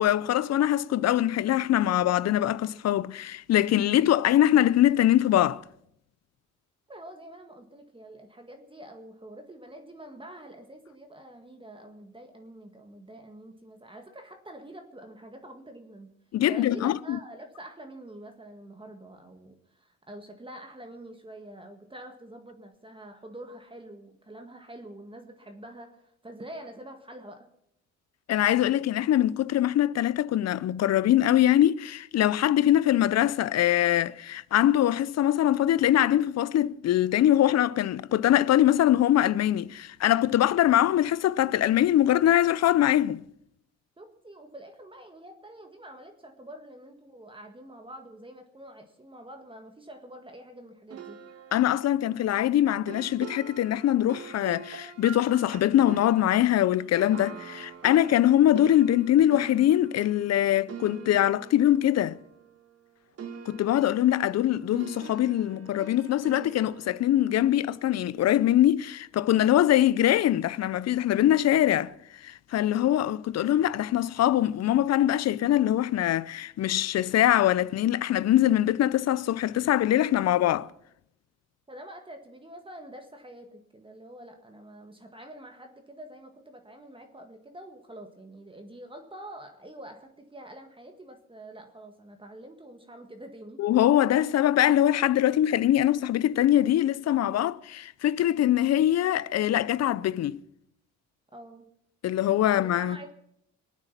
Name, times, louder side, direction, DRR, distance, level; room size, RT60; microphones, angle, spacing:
voice 1, 0.0-5.6 16.3-17.2 28.3-43.2 51.5-62.2 63.5-71.9 72.2-80.7 93.6-100.4 102.0-103.0, left 12 dB, 60° left, 0.6 m, -23 dB
voice 2, 6.9-16.1 16.4-27.5 44.0-51.2 81.7-93.6 101.3-101.7 102.5-103.1, right 1 dB, 15° right, 1.7 m, -46 dB
sound 1, 50.9-62.9 63.2-68.4, right 7 dB, 50° right, 1.6 m, -45 dB
23.0 x 9.1 x 5.8 m
cardioid pair, 90°, 30 cm